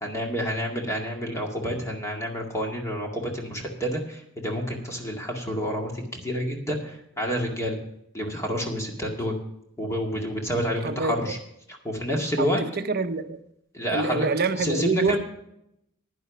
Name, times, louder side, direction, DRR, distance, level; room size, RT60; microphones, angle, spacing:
voice 1, 0.0-7.8 8.1-9.3 9.8-11.4 11.8-12.6 13.7-14.3 14.5-15.2, equal, 15° left, 1 dB, 2.0 m, -29 dB
voice 2, 10.8-11.4 12.4-13.4 13.9-15.2, right 3 dB, 45° right, 10 dB, 0.9 m, -26 dB
11.0 x 10.0 x 5.2 m, 0.77 s
head